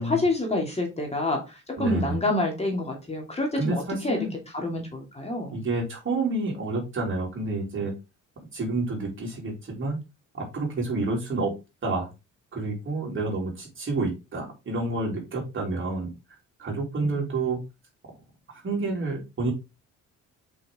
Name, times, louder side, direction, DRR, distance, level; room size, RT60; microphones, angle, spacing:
voice 1, 0.0-4.2 4.5-5.6 17.0-17.2, left 2 dB, 20° left, 2.7 m, -27 dB
voice 2, 1.8-2.2 3.5-4.3 5.5-7.9 8.5-10.0 10.3-11.5 11.8-12.1 12.5-16.1 16.6-17.6 18.6-19.5, right 3 dB, 40° right, 3.7 m, -29 dB
6.0 x 5.6 x 3.7 m
cardioid pair, 90°, 30 cm